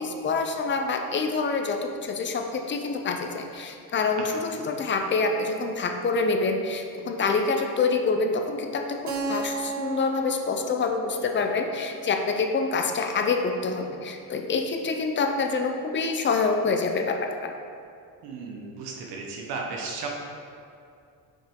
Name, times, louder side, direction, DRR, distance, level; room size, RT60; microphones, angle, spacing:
voice 1, 0.0-1.8 2.0-17.5, left 4 dB, 30° left, 4 dB, 0.5 m, -26 dB
Keyboard (musical), 9.1-13.6, right 4 dB, 45° right, 0.8 m, -36 dB
voice 2, 18.2-20.1, right 4 dB, 70° right, 0 dB, 1.0 m, -35 dB
5.9 x 5.0 x 3.7 m, 2.4 s
cardioid pair, 130°, 41 cm